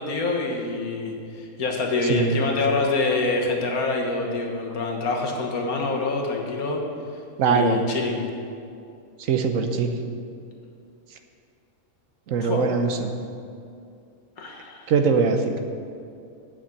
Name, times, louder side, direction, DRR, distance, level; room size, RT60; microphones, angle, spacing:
voice 1, 0.0-6.8 7.4-8.2 12.4-12.7 14.4-14.9, left 3 dB, 85° left, 1 dB, 1.7 m, -26 dB
voice 2, 7.4-7.8 9.3-9.9 12.3-13.1 14.9-15.4, right 5 dB, 70° right, 6 dB, 1.1 m, -21 dB
8.5 x 6.0 x 7.8 m, 2.4 s
omnidirectional pair, 1.5 m